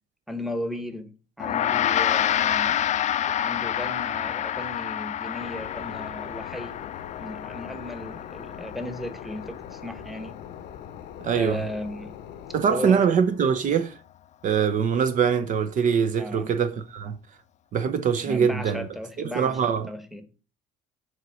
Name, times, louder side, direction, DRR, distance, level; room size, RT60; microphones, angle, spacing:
voice 1, 0.3-2.8 3.4-6.8 7.2-10.4 11.3-12.2 12.7-13.2 16.2-16.5 18.2-20.2, left 1 dB, ahead, 1.0 m, -36 dB
Gong, 1.4-10.9, left 11 dB, 45° left, 0.4 m, -28 dB
sound 1, 5.4-12.7, left 9 dB, 90° left, 0.9 m, -42 dB
voice 2, 11.2-11.6 12.5-13.9 14.4-17.2 17.7-18.9 19.2-19.9, right 7 dB, 50° right, 0.6 m, -23 dB
7.4 x 3.1 x 6.0 m
cardioid pair, 110°, 17 cm